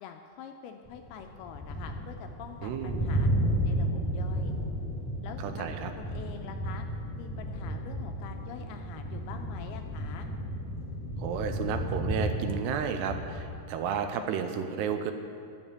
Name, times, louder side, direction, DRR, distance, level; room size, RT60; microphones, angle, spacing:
voice 1, 0.0-3.3 3.7-4.5 5.2-5.7 6.0-6.9 7.2-10.3, left 8 dB, 80° left, 5 dB, 2.3 m, -45 dB
sound 1, 0.9-13.6, equal, 10° left, 2.8 m, -33 dB
voice 2, 2.6-3.1 5.4-5.9 11.2-15.1, right 7 dB, 85° right, 7 dB, 2.7 m, -32 dB
10.5 x 7.2 x 8.2 m, 2.4 s
omnidirectional pair, 4.9 m